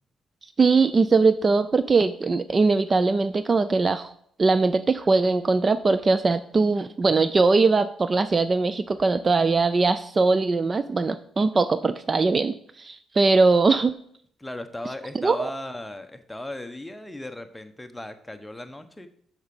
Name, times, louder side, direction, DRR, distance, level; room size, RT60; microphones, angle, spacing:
voice 1, 0.6-4.1 4.4-13.9 15.1-15.5, right 3 dB, 35° right, 13 dB, 0.4 m, -21 dB
voice 2, 14.4-19.1, left 1 dB, 10° left, 7 dB, 0.9 m, -37 dB
6.4 x 5.9 x 7.0 m, 0.65 s
cardioid pair, 90°, 0 cm